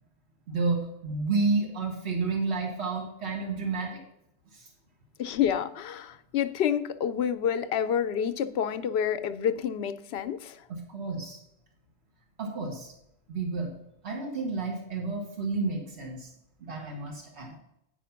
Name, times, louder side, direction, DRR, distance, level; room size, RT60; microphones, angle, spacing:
voice 1, 0.5-4.0 4.5-4.7 10.7-11.4 12.4-12.9 13.3-13.8 14.0-16.3 16.6-17.6, right 3 dB, 85° right, 0 dB, 1.7 m, -31 dB
voice 2, 5.2-10.6, left 8 dB, 75° left, 12 dB, 0.8 m, -28 dB
9.9 x 5.0 x 5.7 m, 0.81 s
omnidirectional pair, 1.1 m